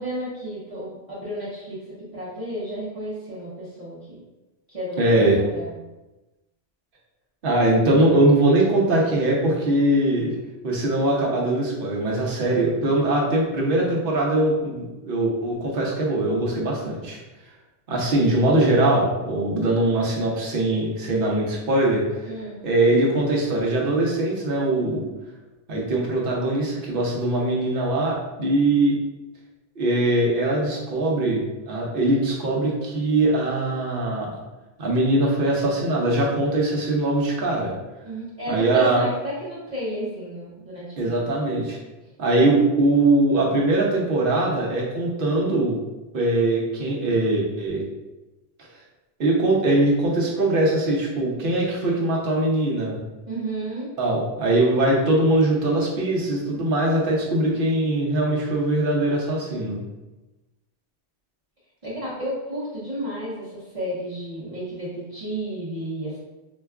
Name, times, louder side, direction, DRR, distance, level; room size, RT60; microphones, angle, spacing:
voice 1, 0.0-1.8 2.1-4.2 4.7-5.8 22.2-22.7 38.0-41.2 53.3-53.9 61.8-66.2, equal, 35° right, -10 dB, 0.8 m, -32 dB
voice 2, 5.0-5.4 7.4-10.3 10.6-17.2 17.9-22.3 22.6-25.1 25.7-29.0 29.8-34.3 34.8-37.7 38.5-39.0 41.0-41.8 42.2-45.8 46.1-47.8 49.2-53.0 54.0-59.8, right 2 dB, 55° right, -2 dB, 0.9 m, -21 dB
4.3 x 2.2 x 2.3 m, 1.1 s
omnidirectional pair, 1.2 m